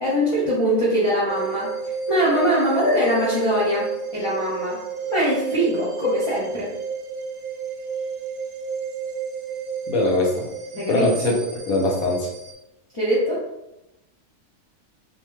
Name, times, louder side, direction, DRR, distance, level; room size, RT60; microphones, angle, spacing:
voice 1, 0.0-1.7 2.1-4.8 5.1-6.7 10.7-11.1 12.9-13.4, equal, 30° left, -8 dB, 0.6 m, -22 dB
sound 1, 1.3-12.5, right 6 dB, 75° right, 1.0 m, -32 dB
voice 2, 9.9-10.4 10.9-11.3 11.7-12.2, left 2 dB, 85° left, -1 dB, 1.2 m, -21 dB
2.8 x 2.2 x 3.1 m, 0.88 s
omnidirectional pair, 1.5 m